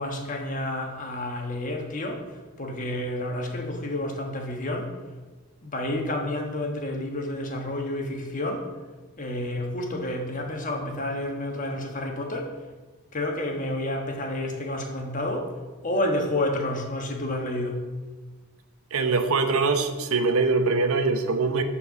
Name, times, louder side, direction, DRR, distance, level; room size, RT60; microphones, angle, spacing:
voice 1, 0.0-2.3 2.6-4.9 5.6-8.7 9.2-12.5 13.1-15.5 15.8-17.9, left 1 dB, 35° left, 2 dB, 1.3 m, -30 dB
voice 2, 18.9-21.6, right 4 dB, 75° right, 7 dB, 0.9 m, -23 dB
10.5 x 4.6 x 7.1 m, 1.3 s
head